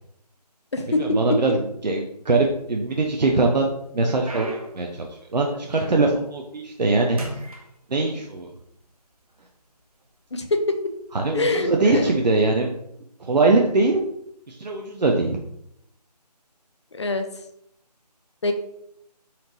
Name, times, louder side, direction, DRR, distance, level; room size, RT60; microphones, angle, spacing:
voice 1, 0.9-7.5 7.9-8.5 11.1-12.7 13.2-14.0 14.5-15.4, right 3 dB, 85° right, 1 dB, 0.6 m, -22 dB
sound 1, 2.3-3.0 3.5-6.3 6.6-6.9 7.2-8.4 9.2-9.3 10.0-10.2 11.4-11.6, right 1 dB, 60° right, 0.9 m, -39 dB
voice 2, 10.3-10.6 11.3-12.1 17.0-17.3 18.4-18.5, left 2 dB, 45° left, 6 dB, 0.5 m, -24 dB
4.2 x 3.0 x 2.6 m, 0.75 s
figure-of-eight pair, 165°, 21 cm